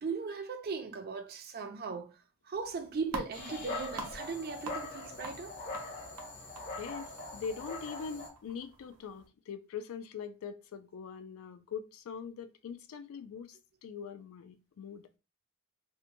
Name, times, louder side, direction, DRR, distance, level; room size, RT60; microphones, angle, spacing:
voice 1, 0.0-2.2 2.4-5.6, right 5 dB, 45° right, 0.4 m, -38 dB
sound 1, 2.5-9.3, right 3 dB, 90° right, 0.6 m, -47 dB
Dog, 3.3-8.3, left 2 dB, 40° left, 0.7 m, -42 dB
voice 2, 6.8-15.1, left 6 dB, 70° left, 0.3 m, -42 dB
2.8 x 2.1 x 2.6 m
head